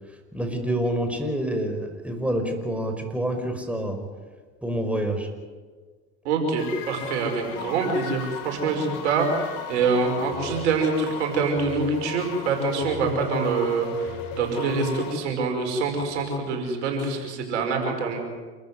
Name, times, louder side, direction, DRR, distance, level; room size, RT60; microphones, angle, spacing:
voice 1, 0.3-4.1 4.6-5.3, right 1 dB, 5° right, 5 dB, 5.5 m, -27 dB
voice 2, 6.2-18.2, right 4 dB, 90° right, 3 dB, 5.4 m, -25 dB
sound 1, 6.6-15.1, left 6 dB, 75° left, 3.8 m, -36 dB
27.5 x 14.5 x 9.7 m, 1.5 s
hypercardioid pair, 75°, 34 cm